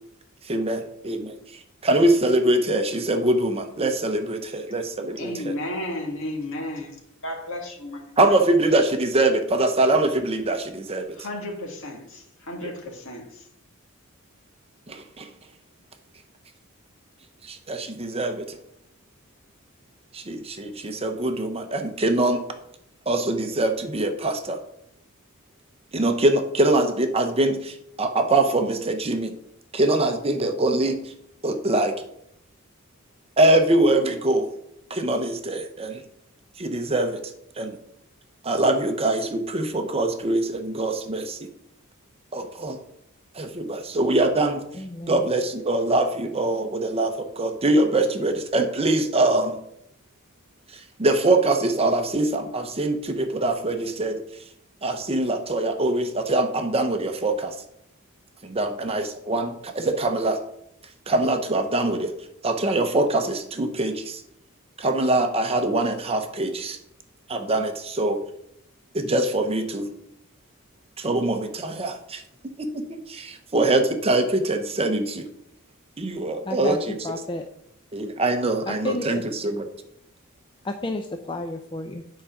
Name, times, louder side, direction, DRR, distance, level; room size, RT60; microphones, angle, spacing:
voice 1, 0.4-1.3 1.8-5.5 8.2-11.1 12.6-12.7 14.9-15.3 17.4-18.6 20.1-22.4 23.1-24.6 25.9-29.3 29.7-31.0 31.4-32.0 33.4-34.5 34.9-36.0 36.6-37.2 37.6-37.8 38.4-41.4 42.3-42.8 43.3-44.6 45.1-49.6 50.7-54.2 54.8-57.5 58.4-60.4 61.1-62.1 62.4-64.2 64.8-66.8 67.3-68.2 68.9-69.9 71.0-72.2 72.6-75.3 76.0-77.0 77.9-79.7, right 2 dB, 30° right, 7 dB, 0.8 m, -23 dB
voice 2, 5.2-7.0 7.2-8.4 11.1-13.5, left 1 dB, 60° left, 1 dB, 2.0 m, -33 dB
voice 3, 44.7-45.3 76.5-76.8 77.0-77.4 78.7-79.2 80.6-82.0, left 2 dB, 25° left, 5 dB, 0.5 m, -31 dB
9.4 x 4.9 x 5.8 m, 0.77 s
head